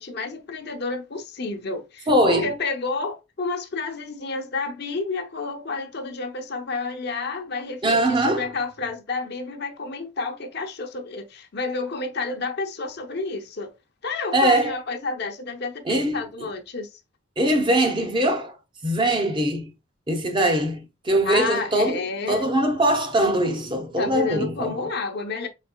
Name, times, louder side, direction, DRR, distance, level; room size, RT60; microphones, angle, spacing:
voice 1, 0.0-13.7 14.0-17.0 21.2-22.5 24.0-25.5, left 3 dB, 55° left, 0.8 m, -30 dB
voice 2, 2.1-2.5 7.8-8.5 14.3-14.8 15.9-16.2 17.4-18.6 18.8-19.7 20.1-22.0 22.3-24.8, right 1 dB, 25° right, 0.8 m, -22 dB
5.2 x 4.0 x 2.2 m
head